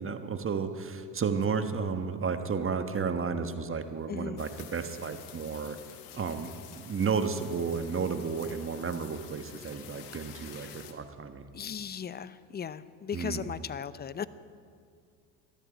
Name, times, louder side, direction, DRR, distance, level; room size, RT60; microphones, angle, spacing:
voice 1, 0.0-5.8 6.1-11.5 13.1-13.5, right 5 dB, 30° right, 8 dB, 1.3 m, -32 dB
voice 2, 4.1-4.5 10.5-10.8 11.5-14.2, left 7 dB, 20° left, 16 dB, 0.6 m, -37 dB
sound 1, 4.4-10.9, left 10 dB, 85° left, 1.5 m, -49 dB
18.5 x 12.5 x 5.1 m, 2.2 s
hypercardioid pair, 75°, 44 cm